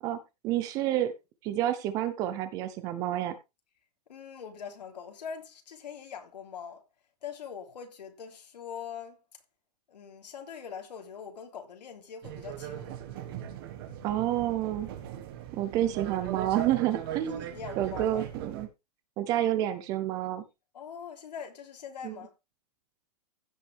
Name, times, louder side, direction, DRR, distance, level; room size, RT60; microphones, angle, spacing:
voice 1, 0.4-1.1 1.4-3.4 14.0-14.9 15.5-17.4 17.8-18.7 19.2-20.4 22.0-22.2, right 12 dB, 15° right, 0.6 m, -29 dB
voice 2, 4.1-6.8 7.2-9.2 9.9-13.0 17.2-18.3 20.7-22.3, left 7 dB, 90° left, 3.4 m, -43 dB
sound 1, 12.2-18.7, right 11 dB, 35° right, 1.5 m, -39 dB
15.5 x 5.9 x 3.4 m
hypercardioid pair, 170°, 21 cm